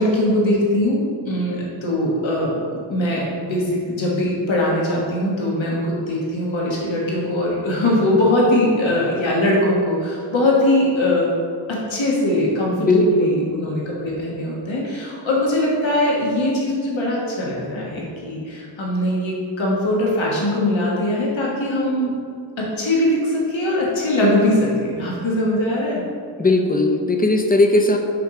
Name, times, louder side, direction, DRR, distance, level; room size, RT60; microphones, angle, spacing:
voice 1, 0.0-11.3 11.7-22.1 22.6-26.0, left 1 dB, 75° left, -4 dB, 1.5 m, -21 dB
voice 2, 12.8-13.6 26.4-28.0, left 2 dB, 20° left, 4 dB, 0.7 m, -18 dB
6.8 x 3.2 x 4.9 m, 2.3 s
cardioid pair, 60°, 46 cm